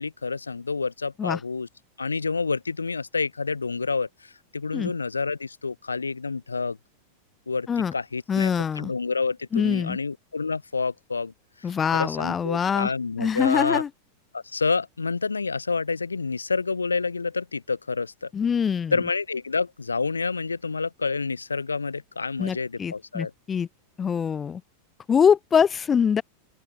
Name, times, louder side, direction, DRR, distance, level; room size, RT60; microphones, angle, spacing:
voice 1, 0.0-1.7 2.0-6.8 7.5-8.5 8.8-11.3 11.9-13.8 14.3-18.3 18.9-23.3, left 4 dB, 75° left, 3.0 m, -28 dB
voice 2, 8.3-8.9 9.5-10.0 11.6-12.9 13.2-13.9 18.3-18.9 22.4-23.7 24.0-24.6 25.1-26.2, left 7 dB, 20° left, 3.7 m, -24 dB
open air
figure-of-eight pair, 90°, 0 cm